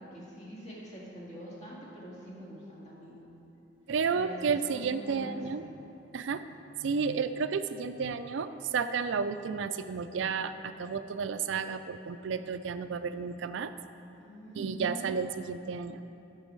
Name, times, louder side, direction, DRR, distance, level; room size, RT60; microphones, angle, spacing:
voice 1, 0.0-3.2 4.1-5.4 14.2-15.0, equal, 35° left, -6 dB, 2.0 m, -45 dB
voice 2, 3.9-5.6 6.1-6.4 6.8-13.7 14.6-16.0, right 5 dB, 75° right, 11 dB, 0.4 m, -32 dB
12.0 x 6.9 x 4.5 m, 2.9 s
head